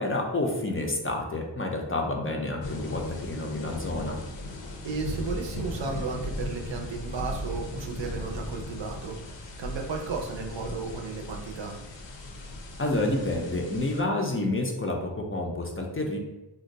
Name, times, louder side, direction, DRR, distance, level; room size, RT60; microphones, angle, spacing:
voice 1, 0.0-4.2 12.8-16.2, left 2 dB, 30° left, 1 dB, 0.4 m, -29 dB
sound 1, 2.6-14.0, left 1 dB, 70° left, 0.6 m, -37 dB
voice 2, 4.8-11.7, right 4 dB, 70° right, 1 dB, 0.6 m, -34 dB
2.5 x 2.2 x 3.9 m, 0.99 s
wide cardioid pair, 65°, 47 cm